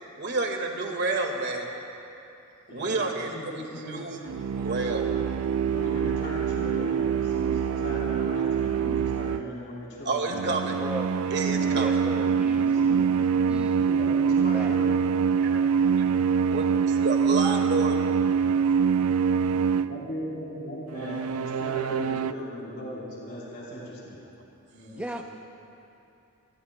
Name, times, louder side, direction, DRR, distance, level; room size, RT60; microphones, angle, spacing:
voice 1, 0.1-1.7 2.7-4.2 4.5-5.1 10.0-10.7 11.3-11.9 15.4-15.6 16.0-16.1 16.5-18.0, right 3 dB, 50° right, 2 dB, 1.7 m, -30 dB
voice 2, 3.2-4.1 5.6-10.5 11.4-11.7 12.2-13.3 13.8-15.1 15.5-15.8 19.8-24.2 24.7-25.1, left 1 dB, 55° left, -6 dB, 3.7 m, -39 dB
sound 1, 4.3-9.6 10.3-20.1 20.9-22.3, right 6 dB, 70° right, 0.4 m, -25 dB
voice 3, 10.4-11.1 11.7-12.9 13.5-14.0 14.5-14.8 25.0-25.2, right 1 dB, 5° right, 2 dB, 0.5 m, -37 dB
27.0 x 21.5 x 2.2 m, 2.8 s
head